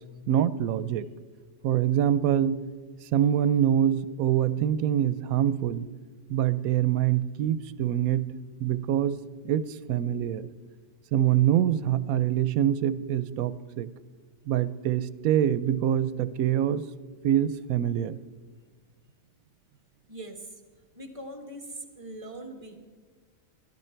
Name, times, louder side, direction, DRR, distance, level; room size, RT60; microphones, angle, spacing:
voice 1, 0.3-1.1 1.6-2.6 3.1-5.9 6.3-8.3 8.6-10.5 11.1-13.9 14.5-16.8 17.2-18.2, right 10 dB, 85° right, 15 dB, 1.0 m, -25 dB
voice 2, 20.1-20.5 20.9-22.8, right 1 dB, 25° right, 4 dB, 1.5 m, -41 dB
18.0 x 12.0 x 4.5 m, 1.5 s
omnidirectional pair, 1.4 m